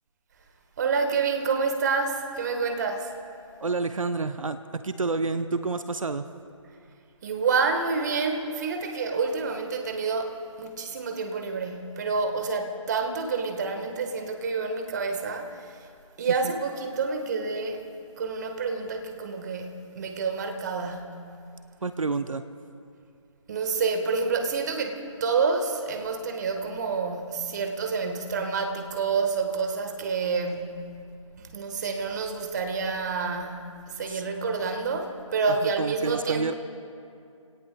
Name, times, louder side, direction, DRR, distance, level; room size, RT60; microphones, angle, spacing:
voice 1, 0.8-3.2 7.2-15.9 16.2-17.9 18.2-21.3 23.5-30.9 31.4-36.5, right 4 dB, 35° right, 5 dB, 1.3 m, -28 dB
voice 2, 3.6-6.3 21.8-22.4 34.1-34.2 35.8-36.5, right 3 dB, 80° right, 10 dB, 0.7 m, -29 dB
30.0 x 17.5 x 2.2 m, 2.5 s
figure-of-eight pair, 155°, 17 cm